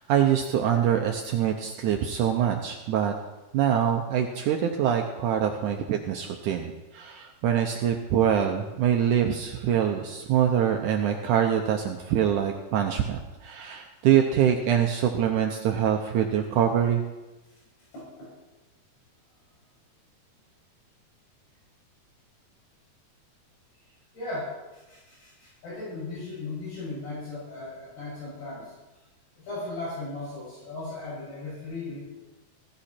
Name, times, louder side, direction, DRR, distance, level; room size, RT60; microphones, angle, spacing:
voice 1, 0.0-3.1 3.5-17.0, right 9 dB, 85° right, 3 dB, 1.8 m, -24 dB
voice 2, 17.9-18.3 24.1-28.8 29.4-32.0, left 2 dB, 75° left, -7 dB, 8.6 m, -37 dB
16.0 x 14.5 x 4.4 m, 1.1 s
omnidirectional pair, 4.6 m